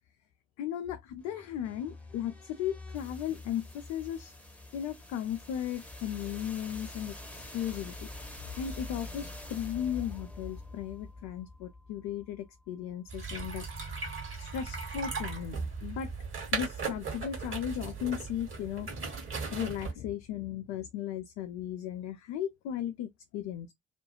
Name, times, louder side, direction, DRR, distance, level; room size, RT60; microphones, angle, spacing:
voice 1, 0.6-4.3 4.7-8.1 8.5-13.7 14.4-15.6 15.8-16.1 16.5-18.9 19.5-23.7, left 10 dB, 55° left, 0.5 m, -36 dB
sound 1, 1.2-13.1, left 2 dB, 5° left, 0.9 m, -46 dB
sound 2, 13.1-19.9, right 4 dB, 40° right, 1.3 m, -37 dB
2.4 x 2.2 x 2.9 m
figure-of-eight pair, 45°, 32 cm